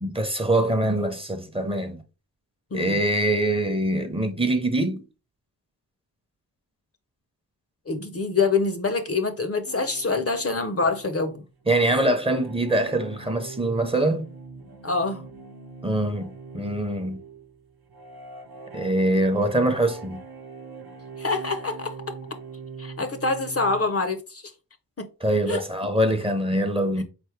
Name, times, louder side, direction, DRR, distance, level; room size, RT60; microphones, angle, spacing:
voice 1, 0.0-2.0 2.7-5.0 11.7-14.3 15.8-17.2 18.7-20.2 25.2-27.0, right 1 dB, 15° right, 0.7 m, -24 dB
voice 2, 7.9-11.4 14.8-15.3 21.2-22.0 22.8-24.4 25.0-25.1 25.5-25.6 27.0-27.1, left 4 dB, 35° left, 0.6 m, -25 dB
sound 1, 9.7-23.8, right 4 dB, 60° right, 0.9 m, -42 dB
4.1 x 3.4 x 3.2 m
cardioid pair, 70°, 40 cm